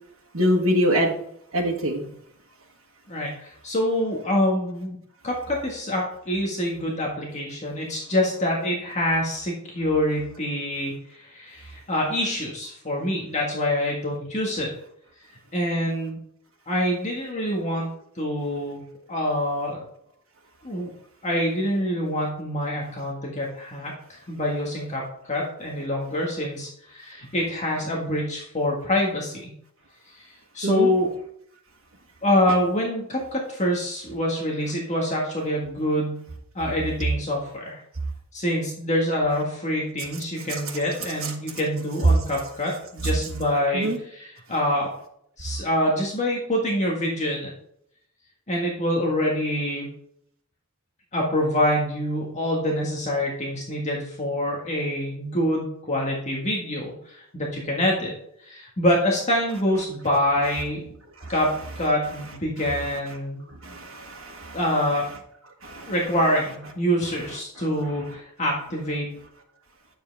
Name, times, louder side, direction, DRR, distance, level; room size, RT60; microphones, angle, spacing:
voice 1, 0.3-1.1 1.5-2.1 30.6-30.9 41.2-41.3 43.7-44.0 61.2-61.3 63.6-64.6 65.6-65.9, equal, 80° right, -2 dB, 1.4 m, -24 dB
voice 2, 3.1-5.0 5.2-14.7 15.5-16.2 16.7-17.9 18.1-18.8 19.1-19.8 20.6-20.9 21.2-29.5 30.1-30.3 30.5-31.1 32.2-36.3 36.5-37.8 38.3-44.9 45.4-47.5 48.5-49.9 51.1-58.1 58.4-60.9 61.3-63.4 64.5-65.1 65.9-69.1, left 1 dB, 35° left, -2 dB, 1.7 m, -26 dB
10.0 x 7.5 x 3.4 m, 0.72 s
head